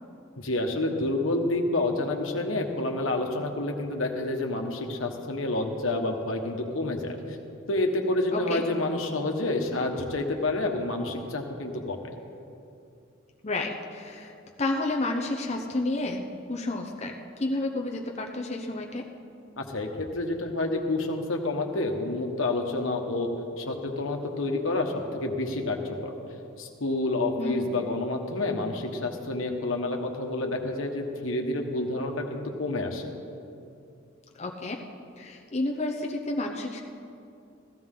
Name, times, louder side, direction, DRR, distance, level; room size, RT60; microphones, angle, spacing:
voice 1, 0.4-7.4 7.7-12.0 19.6-23.3 23.6-24.9 25.2-26.1 26.6-33.1, left 2 dB, 85° left, 2 dB, 1.3 m, -29 dB
voice 2, 8.3-8.6 13.4-14.3 14.6-17.1 17.4-19.0 27.4-27.7 34.4-34.8 35.2-36.8, left 2 dB, 35° left, 1 dB, 0.8 m, -30 dB
15.5 x 14.5 x 3.8 m, 2.6 s
head